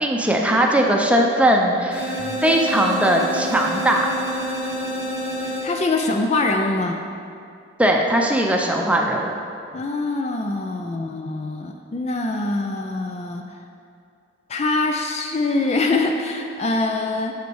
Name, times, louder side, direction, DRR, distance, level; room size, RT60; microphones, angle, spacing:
voice 1, 0.0-4.1 7.8-9.4, right 1 dB, 5° right, 0 dB, 0.7 m, -19 dB
sound 1, 1.9-6.1, equal, 60° left, 1.6 m, -28 dB
voice 2, 5.4-7.0 9.7-13.4 14.5-17.3, left 2 dB, 35° left, 3 dB, 0.4 m, -24 dB
8.2 x 6.3 x 4.7 m, 2.4 s
head